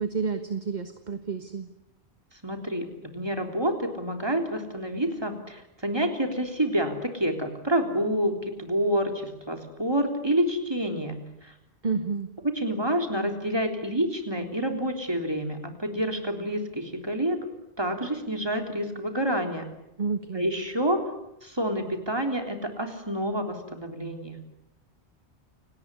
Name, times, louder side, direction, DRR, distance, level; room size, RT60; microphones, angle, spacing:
voice 1, 0.0-1.7 11.8-12.3 20.0-20.5, right 5 dB, 40° right, 8 dB, 1.6 m, -30 dB
voice 2, 2.4-11.5 12.4-17.4 17.8-19.7 20.3-21.0 21.4-24.4, equal, 20° right, 5 dB, 3.7 m, -28 dB
29.0 x 19.0 x 9.9 m, 0.87 s
omnidirectional pair, 1.1 m